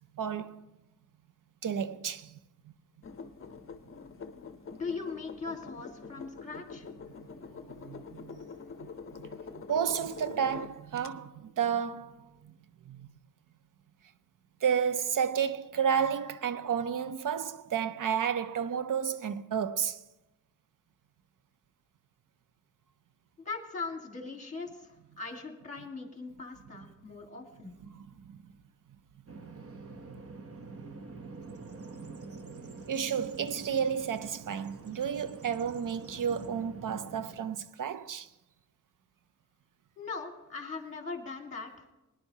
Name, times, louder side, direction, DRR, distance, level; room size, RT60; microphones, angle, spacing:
voice 1, 0.2-0.6 1.6-2.4 7.7-8.4 9.2-9.3 9.7-12.2 12.4-12.5 12.9-13.1 14.6-20.0 27.9-28.4 32.9-38.3, right 7 dB, 70° right, 0.6 m, -31 dB
sound 1, 3.0-11.1, left 5 dB, 40° left, 0.6 m, -45 dB
voice 2, 4.7-6.9 23.4-27.7 39.9-41.9, left 4 dB, 20° left, 1.7 m, -40 dB
Bird vocalization bird call bird song, 29.3-37.6, right 3 dB, 45° right, 0.8 m, -46 dB
21.5 x 10.5 x 2.8 m
wide cardioid pair, 135°, 33 cm